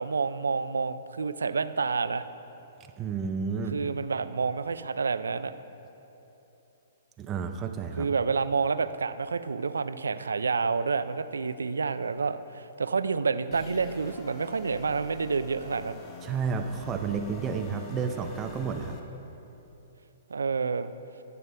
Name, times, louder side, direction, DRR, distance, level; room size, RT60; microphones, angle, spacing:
voice 1, 0.0-2.3 3.7-5.5 8.0-16.0 20.3-20.9, right 5 dB, 80° right, 12 dB, 0.3 m, -29 dB
voice 2, 3.0-3.8 7.2-8.1 16.2-19.0, right 5 dB, 25° right, 5 dB, 0.5 m, -31 dB
sound 1, 13.5-19.0, left 4 dB, 30° left, 1.0 m, -45 dB
19.5 x 6.7 x 2.2 m, 3.0 s
hypercardioid pair, 120°, 0 cm